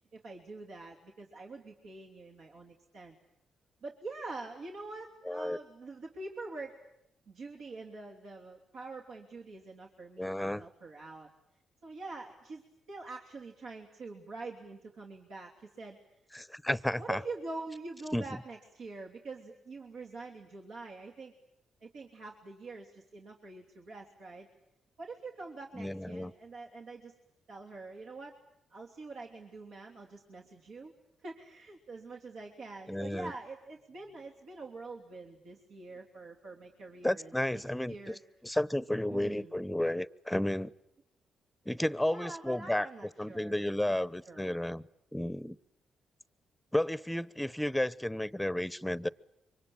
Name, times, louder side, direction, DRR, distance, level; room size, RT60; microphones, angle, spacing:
voice 1, 0.1-3.1 3.8-6.8 7.3-11.3 11.8-12.6 12.9-16.0 17.0-21.3 21.8-24.5 25.0-27.1 27.5-28.4 28.7-30.9 31.2-38.2 39.1-39.5 42.0-44.6, right 3 dB, 70° right, -2 dB, 3.2 m, -45 dB
voice 2, 5.3-5.6 10.2-10.7 16.3-17.2 18.1-18.2 25.8-26.3 32.9-33.3 37.0-38.2 38.4-40.7 41.7-42.9 43.2-44.8 45.1-45.6 46.7-49.1, left 1 dB, 5° left, 19 dB, 1.0 m, -32 dB
27.5 x 24.5 x 8.8 m, 0.84 s
hypercardioid pair, 45°, 0 cm